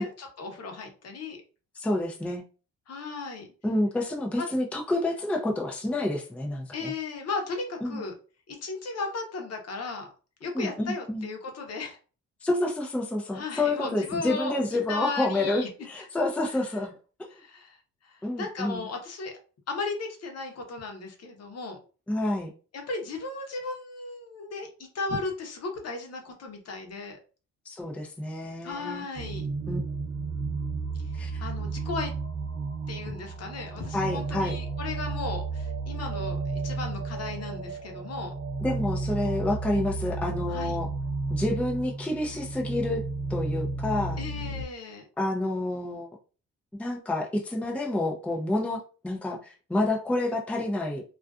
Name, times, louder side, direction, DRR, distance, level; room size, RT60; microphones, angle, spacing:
voice 1, 0.0-1.4 2.9-3.5 4.4-4.5 6.7-8.1 8.5-10.1 10.4-12.0 13.3-14.6 14.9-15.7 16.0-16.6 17.3-17.8 18.0-19.3 19.7-21.8 22.7-24.7 24.9-27.2 28.6-29.5 31.4-32.1 32.9-38.3 40.5-40.8 44.2-45.0, left 3 dB, 55° left, 3 dB, 0.8 m, -35 dB
voice 2, 1.8-2.4 3.6-6.9 7.8-8.0 10.5-11.3 12.4-16.9 18.2-18.9 22.1-22.5 27.7-29.1 29.7-29.8 31.1-31.4 33.9-34.5 38.6-40.9 41.3-43.0 43.3-44.2 45.2-46.1 46.8-51.0, left 2 dB, 5° left, 0 dB, 0.5 m, -29 dB
sound 1, 29.1-44.6, right 3 dB, 40° right, 0.7 m, -33 dB
2.4 x 2.4 x 2.3 m, 0.36 s
cardioid pair, 90°, 30 cm